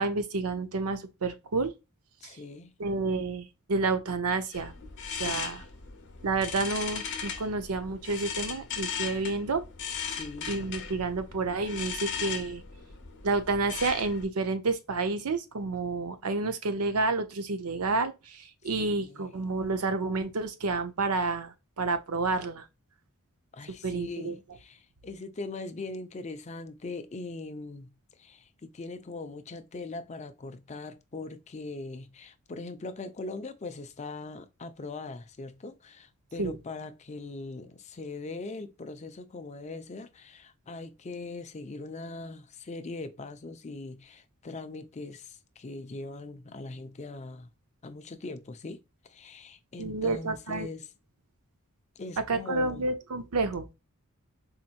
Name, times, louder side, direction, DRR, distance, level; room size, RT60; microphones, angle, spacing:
voice 1, 0.0-1.7 2.2-2.3 2.8-4.7 5.2-5.6 6.2-9.6 10.5-12.6 13.2-22.6 23.8-24.3 36.4-36.6 49.8-50.7 52.3-53.7, right 3 dB, 80° right, 0.7 m, -30 dB
voice 2, 2.2-2.7 5.2-5.6 10.1-10.5 18.8-19.3 23.5-47.5 47.8-50.9 52.0-52.8, left 3 dB, 30° left, 0.4 m, -41 dB
sound 1, 4.5-14.2, left 7 dB, 55° left, 0.8 m, -37 dB
4.2 x 2.8 x 2.4 m
head